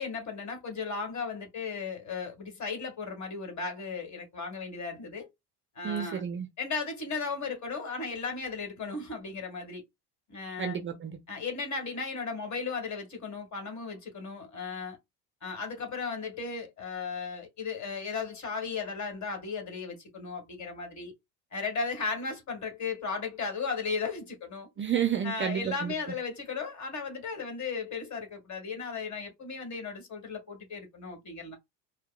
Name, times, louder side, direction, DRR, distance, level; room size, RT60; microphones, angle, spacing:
voice 1, 0.0-5.3 5.8-6.2 6.6-9.8 10.3-10.8 11.3-15.0 15.4-21.1 21.5-24.7 25.2-31.6, left 4 dB, 35° left, 1.8 m, -36 dB
voice 2, 5.8-6.5 10.6-11.2 24.8-26.0, right 8 dB, 25° right, 0.5 m, -30 dB
4.5 x 2.3 x 2.4 m
hypercardioid pair, 70°, 48 cm